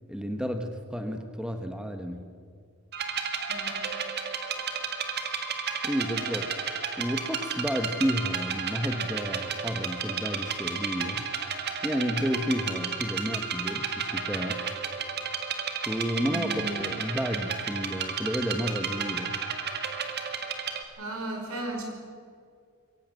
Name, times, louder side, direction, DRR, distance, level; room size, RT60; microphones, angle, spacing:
voice 1, 0.1-2.3 5.8-6.5 7.0-11.3 11.8-14.6 15.9-19.4, equal, 5° right, 6 dB, 1.2 m, -31 dB
sound 1, 2.9-20.8, right 6 dB, 50° right, 1.9 m, -32 dB
voice 2, 3.5-3.9 16.3-16.8 21.0-21.8, right 1 dB, 85° right, 2 dB, 5.5 m, -35 dB
22.5 x 17.0 x 7.6 m, 2.2 s
head